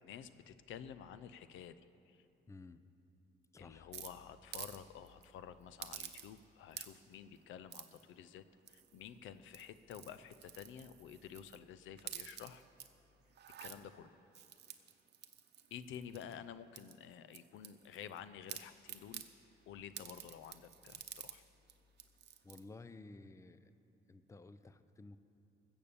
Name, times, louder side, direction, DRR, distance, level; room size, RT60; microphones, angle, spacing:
voice 1, 0.0-2.2 3.6-12.6 13.6-14.2 15.7-19.2 19.7-21.4, left 8 dB, 80° left, 13 dB, 0.5 m, -51 dB
voice 2, 2.5-2.8 3.5-3.9 22.4-23.7 24.1-25.2, left 3 dB, 15° left, 12 dB, 0.5 m, -54 dB
sound 1, 3.9-4.8 5.1-5.3 5.8-6.4 6.7-7.1 7.7-8.0 8.7-9.1 9.4-11.6 12.0-12.9 13.3-13.8 14.3-16.4 16.8-18.2 18.5-19.3 20.0-21.4 21.7-21.8 22.0-22.6, right 9 dB, 60° right, 0.8 m, -50 dB
15.5 x 7.0 x 6.9 m, 2.8 s
cardioid pair, 90°, 20 cm